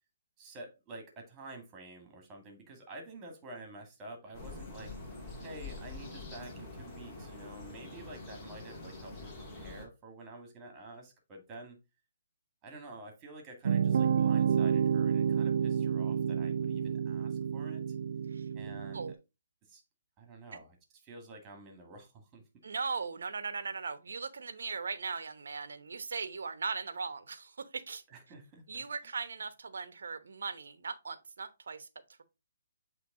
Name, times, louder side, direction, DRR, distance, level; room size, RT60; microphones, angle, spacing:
voice 1, 0.4-4.9 5.4-11.8 12.6-18.0 18.5-19.1 19.7-19.8 20.2-20.8 21.0-22.7 28.1-29.1, right 2 dB, 20° right, 1.9 m, -49 dB
sound 1, 4.3-9.9, left 2 dB, 25° left, 2.2 m, -45 dB
sound 2, 13.6-19.1, right 7 dB, 60° right, 0.3 m, -29 dB
voice 2, 22.6-28.0 28.7-31.9, right 5 dB, 75° right, 0.9 m, -38 dB
7.8 x 3.3 x 3.8 m
hypercardioid pair, 150°, 0 cm